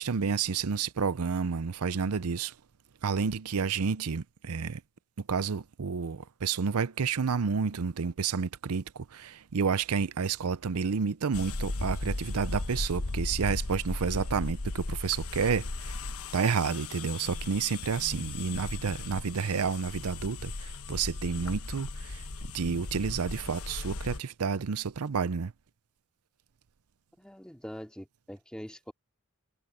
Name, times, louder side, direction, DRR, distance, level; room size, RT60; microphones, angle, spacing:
voice 1, 0.0-2.5 3.0-4.8 5.3-16.0 16.3-22.2 22.5-25.5, right 5 dB, 90° right, 0.6 m, -30 dB
sound 1, 11.3-24.2, left 2 dB, 80° left, 1.1 m, -36 dB
voice 2, 27.2-28.9, equal, 5° left, 2.5 m, -43 dB
head